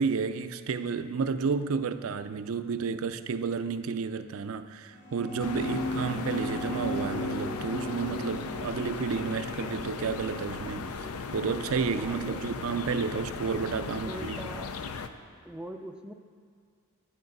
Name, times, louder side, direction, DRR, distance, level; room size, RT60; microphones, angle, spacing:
voice 1, 0.0-11.0 11.3-14.4, right 5 dB, 65° right, 10 dB, 0.4 m, -31 dB
sound 1, 4.9-13.5, left 1 dB, 50° left, 3.2 m, -37 dB
sound 2, 5.4-15.1, left 5 dB, 75° left, 0.5 m, -38 dB
voice 2, 12.0-12.7 13.7-14.8 15.4-16.1, right 1 dB, 5° right, 4 dB, 0.4 m, -43 dB
10.0 x 10.0 x 5.3 m, 2.1 s
head